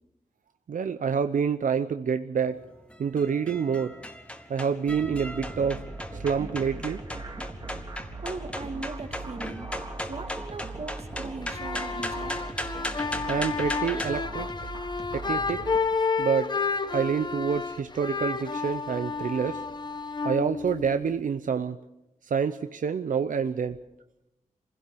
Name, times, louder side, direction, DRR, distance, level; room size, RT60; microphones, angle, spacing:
voice 1, 0.7-2.6 3.0-4.0 4.5-5.8 6.2-7.0 13.3-14.7 15.1-15.6 16.2-16.5 16.9-19.6 20.2-21.8 22.2-23.8, right 6 dB, 85° right, 10 dB, 0.7 m, -27 dB
sound 1, 2.4-14.1, left 1 dB, 10° left, 1.6 m, -38 dB
sound 2, 4.9-15.8, right 2 dB, 30° right, 2.2 m, -39 dB
voice 2, 8.2-9.7 10.1-12.4, right 3 dB, 50° right, 7 dB, 1.9 m, -39 dB
sound 3, 11.4-21.2, left 4 dB, 35° left, 1.1 m, -31 dB
25.5 x 16.5 x 6.8 m, 0.92 s
wide cardioid pair, 150°, 13 cm